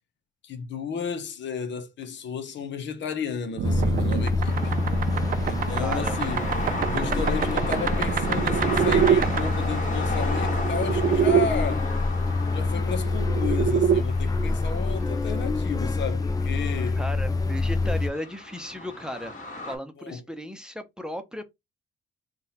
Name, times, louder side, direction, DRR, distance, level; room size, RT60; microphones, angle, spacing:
voice 1, 0.4-4.7 5.4-6.4 6.9-11.9 12.5-17.0 20.0-20.2, left 6 dB, 65° left, 1.0 m, -33 dB
sound 1, 3.6-18.1, left 3 dB, 20° left, 0.4 m, -27 dB
sound 2, 3.6-11.5 12.8-14.0, right 8 dB, 45° right, 0.4 m, -26 dB
voice 2, 4.3-4.9 5.8-6.6 17.0-19.3 19.7-21.4, equal, 5° right, 0.8 m, -36 dB
sound 3, 4.4-19.8, left 2 dB, 40° left, 1.7 m, -35 dB
3.8 x 2.5 x 4.1 m
cardioid pair, 90°, 20 cm